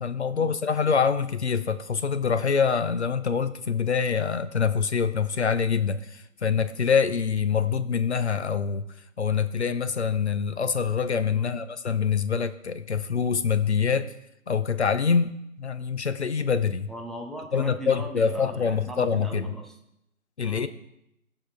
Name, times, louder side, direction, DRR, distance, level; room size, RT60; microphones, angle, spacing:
voice 1, 0.0-8.9 9.2-14.1 14.5-16.9 17.5-19.5 20.4-20.7, left 6 dB, 50° left, 12 dB, 0.6 m, -25 dB
voice 2, 16.9-19.8 20.4-20.7, equal, ahead, 0 dB, 0.5 m, -39 dB
15.5 x 5.7 x 3.5 m, 0.81 s
figure-of-eight pair, 165°, 42 cm